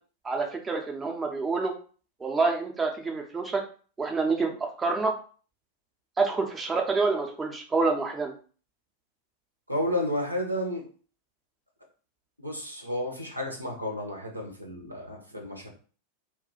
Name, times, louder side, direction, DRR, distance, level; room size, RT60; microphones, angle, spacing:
voice 1, 0.2-1.7 2.2-3.6 4.0-5.1 6.2-8.3, right 3 dB, 15° right, 2 dB, 0.5 m, -27 dB
voice 2, 9.7-10.9 12.4-15.7, left 1 dB, 90° right, 1 dB, 0.7 m, -32 dB
2.3 x 2.3 x 3.7 m, 0.41 s
figure-of-eight pair, 90°, 0 cm